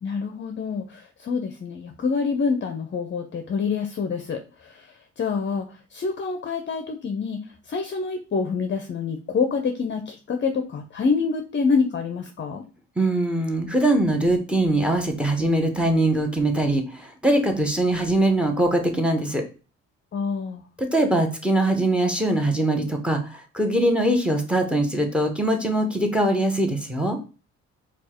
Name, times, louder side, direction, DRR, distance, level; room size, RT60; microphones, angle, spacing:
voice 1, 0.0-12.6 20.1-20.6, left 5 dB, 40° left, 6 dB, 0.7 m, -27 dB
voice 2, 13.0-19.4 20.8-27.2, right 1 dB, 5° right, 5 dB, 1.1 m, -22 dB
4.4 x 2.4 x 4.3 m, 0.34 s
cardioid pair, 90°, 30 cm